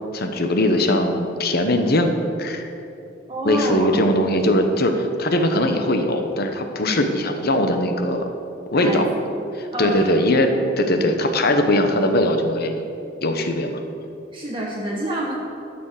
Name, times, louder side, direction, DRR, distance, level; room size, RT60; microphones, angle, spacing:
voice 1, 0.1-2.1 2.4-2.7 3.4-8.3 8.7-9.1 9.5-12.7 13.2-13.8, left 1 dB, 55° left, 6 dB, 1.1 m, -20 dB
voice 2, 3.3-4.0 6.8-7.0 8.8-9.1 9.7-10.2 10.5-10.6 10.9-11.1 14.3-15.3, right 1 dB, 25° right, -4 dB, 1.3 m, -27 dB
12.0 x 7.1 x 6.7 m, 2.8 s
head